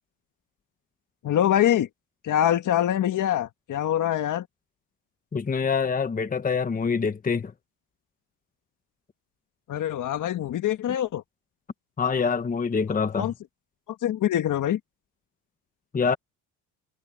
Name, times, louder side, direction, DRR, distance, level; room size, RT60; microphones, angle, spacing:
voice 1, 1.2-1.9 2.2-4.4 9.7-11.2 13.1-13.3 14.0-14.8, left 11 dB, 50° left, 1.6 m, -24 dB
voice 2, 5.3-7.5 12.0-13.3 15.9-16.2, left 5 dB, 20° left, 1.2 m, -25 dB
cardioid pair, 105°, 40 cm